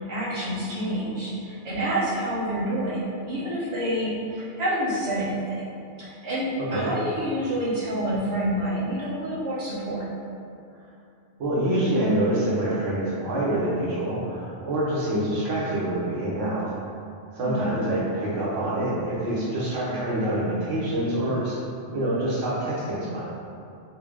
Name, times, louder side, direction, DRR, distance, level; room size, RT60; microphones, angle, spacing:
voice 1, 0.0-5.7 6.0-10.1 17.4-17.7, right 1 dB, 35° right, -10 dB, 1.0 m, -28 dB
voice 2, 6.6-6.9 11.4-16.8 17.3-21.6 21.9-23.2, right 1 dB, 75° right, -7 dB, 1.1 m, -26 dB
4.4 x 2.0 x 3.5 m, 2.5 s
omnidirectional pair, 1.3 m